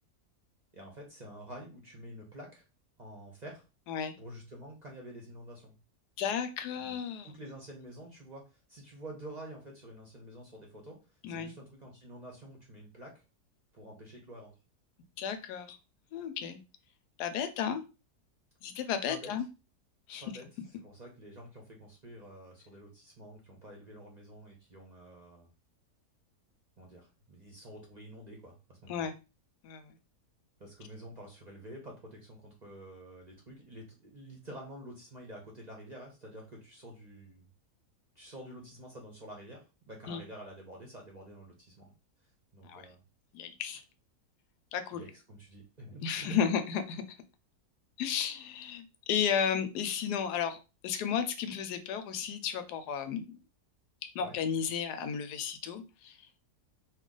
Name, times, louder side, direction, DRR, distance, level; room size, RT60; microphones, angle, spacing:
voice 1, 0.7-2.7 3.0-3.6 4.2-5.7 6.8-7.0 7.2-11.0 11.3-13.1 13.7-14.5 19.1-19.3 20.2-20.4 20.8-25.5 26.8-29.1 30.6-37.5 38.2-41.9 42.5-43.0 44.9-46.4 54.2-54.4, right 1 dB, 35° right, -1 dB, 0.7 m, -48 dB
voice 2, 6.2-7.3 11.2-11.5 15.2-15.8 16.1-16.6 17.2-17.8 18.6-19.5 20.1-20.2 28.9-29.1 29.6-29.9 40.1-40.2 42.6-42.9 43.3-43.8 44.7-45.0 46.0-47.2 48.0-53.4 54.0-56.4, left 7 dB, 90° left, 10 dB, 1.2 m, -33 dB
3.0 x 2.3 x 3.7 m, 0.30 s
omnidirectional pair, 1.7 m